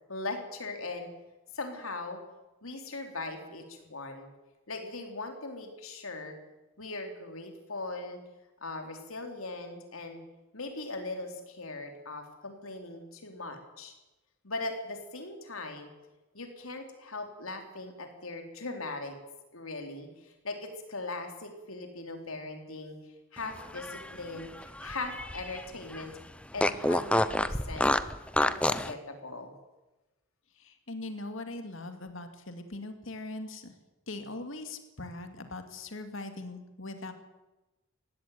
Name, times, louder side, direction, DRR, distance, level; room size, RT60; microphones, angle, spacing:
voice 1, 0.1-1.1 1.5-2.2 2.6-4.3 4.7-6.4 6.8-8.2 8.6-10.2 10.5-13.9 14.4-15.9 16.3-19.2 19.5-23.0 23.3-26.1 26.5-27.9 28.4-29.5, left 3 dB, 85° left, 5 dB, 3.8 m, -39 dB
Fart, 23.6-25.6 25.9-26.0 26.6-28.9, left 1 dB, 5° left, 0.6 m, -28 dB
voice 2, 30.6-33.7 34.1-37.1, left 2 dB, 70° left, 7 dB, 2.4 m, -41 dB
19.0 x 16.0 x 9.3 m, 1.1 s
head